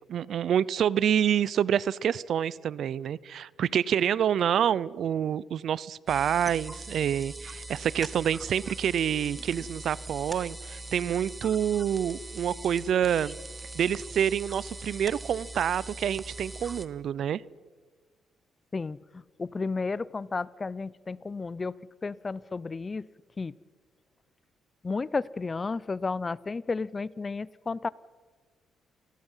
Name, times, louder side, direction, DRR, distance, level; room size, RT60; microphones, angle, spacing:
voice 1, 0.1-13.4 13.7-17.4, right 9 dB, 65° right, 22 dB, 0.6 m, -27 dB
sound 1, 6.1-16.9, right 2 dB, 15° right, 1.6 m, -41 dB
voice 2, 18.7-21.7 22.0-23.1 23.4-23.5 24.8-27.9, left 4 dB, 30° left, 21 dB, 0.6 m, -32 dB
28.5 x 20.5 x 5.6 m, 1.4 s
cardioid pair, 90°, 0 cm